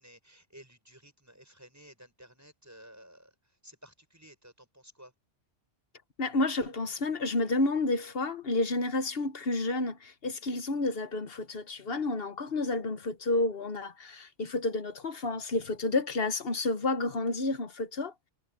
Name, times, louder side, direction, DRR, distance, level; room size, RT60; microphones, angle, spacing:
voice 1, 0.0-3.3 3.6-5.1, equal, 15° right, 6.3 m, -54 dB
voice 2, 6.2-18.1, left 2 dB, 55° left, 1.2 m, -30 dB
omnidirectional pair, 1.2 m